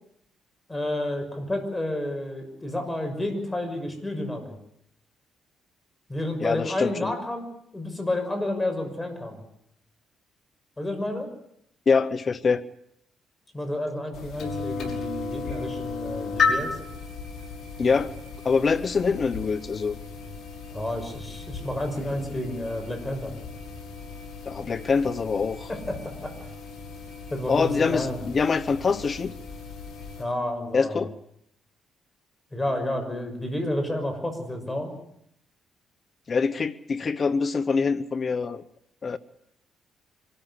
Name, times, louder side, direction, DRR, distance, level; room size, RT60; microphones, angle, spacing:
voice 1, 0.7-4.6 6.1-7.4 7.7-9.4 10.8-11.3 13.5-16.8 20.7-23.3 25.7-26.3 27.3-28.2 30.2-31.0 32.5-34.9, left 1 dB, 15° left, 6 dB, 6.1 m, -30 dB
voice 2, 6.4-7.1 11.9-12.6 17.8-18.1 18.4-20.0 24.5-25.7 27.5-29.3 30.7-31.1 36.3-38.6 39.0-39.2, left 5 dB, 40° left, 15 dB, 0.9 m, -24 dB
sound 1, 14.1-30.2, left 4 dB, 60° left, 6.1 m, -34 dB
25.0 x 13.5 x 9.8 m, 0.74 s
cardioid pair, 90°, 0 cm